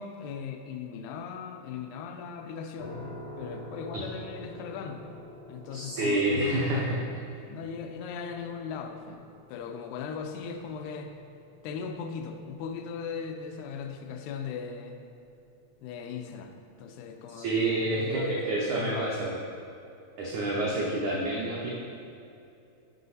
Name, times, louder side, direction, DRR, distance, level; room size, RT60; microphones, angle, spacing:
voice 1, 0.0-3.0 3.4-5.0 5.5-6.9 7.5-9.2 9.5-11.1 11.6-15.0 15.8-16.5 16.8-18.4 18.7-19.2 20.4-20.6, left 6 dB, 90° left, 5 dB, 2.6 m, -38 dB
sound 1, 2.8-15.6, left 1 dB, 75° left, 0.7 m, -48 dB
voice 2, 5.7-7.0 17.4-19.3 20.2-21.7, right 2 dB, 90° right, -4 dB, 1.6 m, -28 dB
7.9 x 5.5 x 4.0 m, 2.7 s
omnidirectional pair, 4.5 m